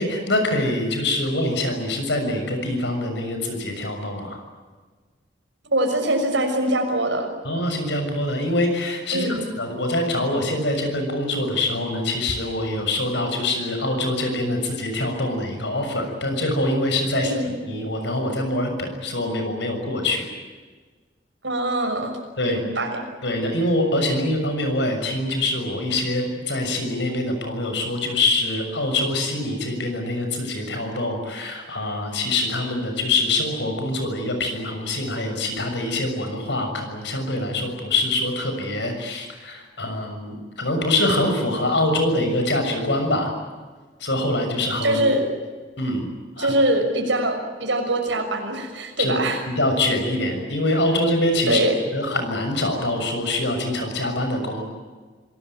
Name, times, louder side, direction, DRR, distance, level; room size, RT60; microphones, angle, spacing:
voice 1, 0.0-4.4 7.4-17.3 17.7-20.2 22.4-22.6 23.2-43.3 44.0-45.0 45.8-46.1 46.4-46.5 49.0-49.2 49.6-51.6 51.9-54.8, left 1 dB, 65° left, 5 dB, 6.6 m, -24 dB
voice 2, 5.7-7.3 9.1-9.4 17.1-17.5 21.4-22.2 22.4-23.0 44.8-45.3 46.4-49.4 51.5-51.8, right 1 dB, 70° right, 4 dB, 6.2 m, -23 dB
27.0 x 18.5 x 9.3 m, 1.4 s
head